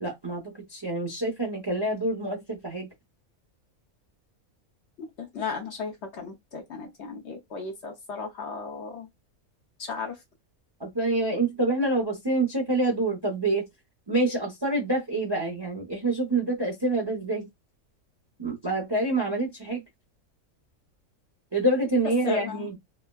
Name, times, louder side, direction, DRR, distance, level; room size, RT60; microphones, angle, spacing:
voice 1, 0.0-2.9 10.8-13.7 14.1-17.5 18.4-19.8 21.5-22.8, right 2 dB, 25° right, 0.5 m, -27 dB
voice 2, 5.3-9.1 9.8-10.2 22.2-22.7, left 5 dB, 55° left, 0.9 m, -35 dB
3.4 x 2.1 x 2.2 m
omnidirectional pair, 1.5 m